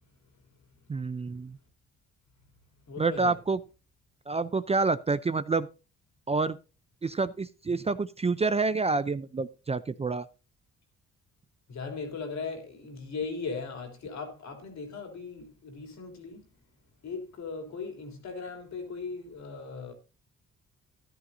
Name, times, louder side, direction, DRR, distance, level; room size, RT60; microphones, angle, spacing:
voice 1, 0.9-1.6 3.0-3.6 4.3-5.7 6.3-6.6 7.0-10.3, right 3 dB, 20° right, 0.5 m, -28 dB
voice 2, 2.9-3.3 11.7-16.4 17.0-19.9, left 4 dB, 65° left, 3.3 m, -38 dB
13.0 x 11.0 x 2.6 m
cardioid pair, 90°, 30 cm